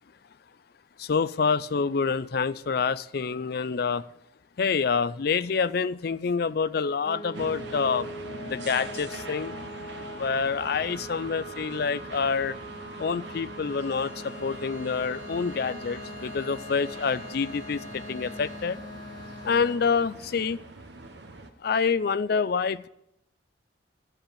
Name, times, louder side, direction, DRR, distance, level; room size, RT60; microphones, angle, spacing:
voice 1, 1.0-4.0 4.6-8.1 8.5-9.5 10.2-12.5 13.0-18.8 19.4-20.6 21.6-22.9, left 5 dB, 50° left, 16 dB, 0.4 m, -27 dB
sound 1, 7.0-19.8, equal, 30° left, 2.5 m, -41 dB
sound 2, 7.3-21.5, right 3 dB, 60° right, 1.0 m, -43 dB
Bowed string instrument, 13.6-18.8, left 1 dB, 35° right, 3.8 m, -49 dB
13.5 x 5.3 x 8.6 m, 0.81 s
head